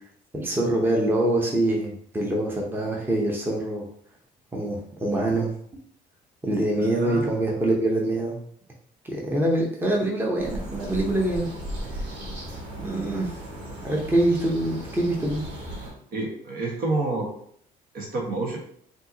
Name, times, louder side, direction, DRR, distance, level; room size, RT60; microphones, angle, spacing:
voice 1, 0.3-3.9 4.5-5.5 6.4-8.4 9.1-11.5 12.8-13.4 13.8-15.4, right 1 dB, 10° right, -1 dB, 0.9 m, -24 dB
voice 2, 6.8-7.3 16.1-17.3 17.9-18.6, right 2 dB, 60° right, -1 dB, 1.4 m, -28 dB
sound 1, 10.4-15.9, right 1 dB, 85° right, 1.7 m, -36 dB
5.4 x 2.8 x 2.8 m, 0.64 s
cardioid pair, 110°, 17 cm